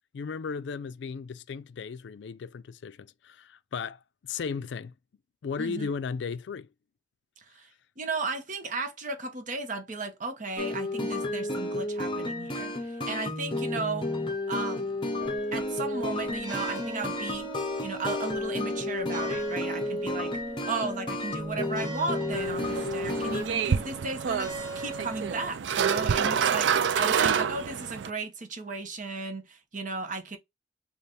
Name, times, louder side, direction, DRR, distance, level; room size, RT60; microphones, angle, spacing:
voice 1, 0.1-4.0 4.3-4.9 5.4-6.7, left 5 dB, 75° left, 0.4 m, -35 dB
voice 2, 5.6-5.9 7.4-7.7 8.0-14.1 14.5-15.0 15.5-17.5 17.8-20.4 20.7-30.4, right 3 dB, 45° right, 0.9 m, -35 dB
sound 1, 10.6-23.4, left 2 dB, 30° left, 0.8 m, -32 dB
sound 2, 15.2-25.5, right 1 dB, 25° right, 1.3 m, -41 dB
sound 3, 22.3-28.1, right 7 dB, 85° right, 0.4 m, -28 dB
4.1 x 2.4 x 3.3 m
head